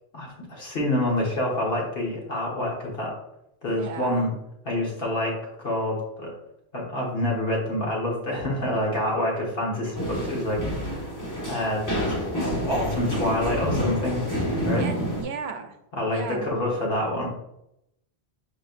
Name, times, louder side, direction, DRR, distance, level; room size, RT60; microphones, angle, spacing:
voice 1, 0.1-3.1 3.6-4.3 4.6-5.4 5.6-6.3 6.7-11.0 11.5-12.2 12.7-14.2 14.6-14.9 16.0-17.3, left 1 dB, 60° left, -3 dB, 1.4 m, -27 dB
voice 2, 3.7-4.2 14.7-15.8 16.0-16.5, right 5 dB, 75° right, 6 dB, 0.8 m, -35 dB
sound 1, 9.9-15.2, equal, 20° left, 1.0 m, -28 dB
4.8 x 4.4 x 2.4 m, 0.83 s
omnidirectional pair, 1.1 m